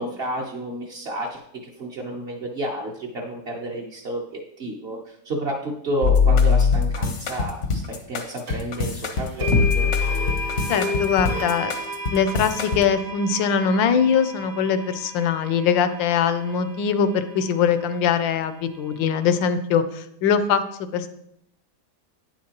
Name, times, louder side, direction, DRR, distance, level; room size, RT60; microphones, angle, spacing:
voice 1, 0.0-1.4 1.8-9.9, right 1 dB, 50° right, -2 dB, 0.7 m, -31 dB
sound 1, 6.0-12.8, left 5 dB, 55° left, 0.8 m, -22 dB
sound 2, 8.5-8.6 9.4-17.4, left 1 dB, 80° right, 3.1 m, -32 dB
voice 2, 10.7-11.7 12.1-21.1, left 7 dB, 75° left, 11 dB, 1.2 m, -22 dB
9.3 x 7.4 x 2.9 m, 0.75 s
omnidirectional pair, 2.2 m